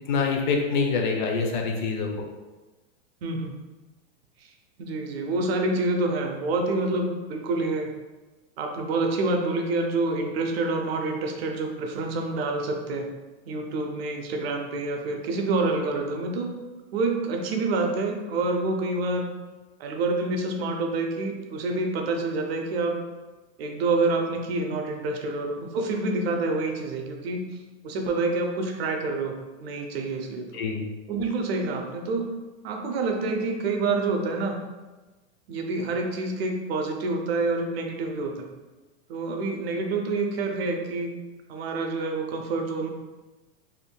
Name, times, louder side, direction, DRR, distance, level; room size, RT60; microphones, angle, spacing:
voice 1, 0.1-2.1 30.5-30.8, left 4 dB, 45° left, 2 dB, 0.4 m, -25 dB
voice 2, 3.2-3.6 4.8-7.9 8.6-13.1 13.5-16.5 16.9-19.3 19.8-23.0 23.6-27.5 27.8-30.5 31.1-32.3 32.6-34.6 35.5-38.5 39.1-41.1 41.5-42.9, right 3 dB, 65° right, 3 dB, 0.6 m, -27 dB
3.4 x 2.6 x 2.2 m, 1.2 s
supercardioid pair, 165°, 33 cm